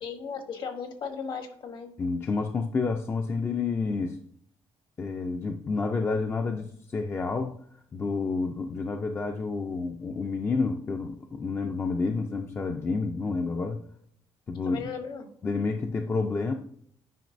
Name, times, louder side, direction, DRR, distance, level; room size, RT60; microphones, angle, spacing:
voice 1, 0.0-1.9 14.6-15.3, left 6 dB, 50° left, 7 dB, 1.1 m, -36 dB
voice 2, 2.0-4.2 5.0-7.6 7.9-13.8 14.5-14.8 15.4-16.5, left 4 dB, 25° left, 5 dB, 0.4 m, -29 dB
9.2 x 5.0 x 2.6 m, 0.64 s
cardioid pair, 160°, 10 cm